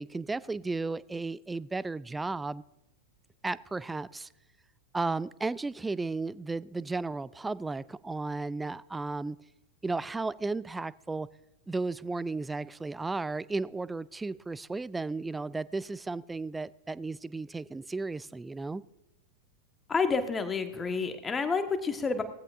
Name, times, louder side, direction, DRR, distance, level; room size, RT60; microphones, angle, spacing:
voice 1, 0.0-2.6 3.4-4.3 4.9-9.4 9.8-11.3 11.7-18.8, right 3 dB, 10° right, 0.4 m, -34 dB
voice 2, 19.9-22.2, left 4 dB, 15° left, 1.4 m, -29 dB
18.5 x 15.0 x 2.5 m
figure-of-eight pair, 90°, 0 cm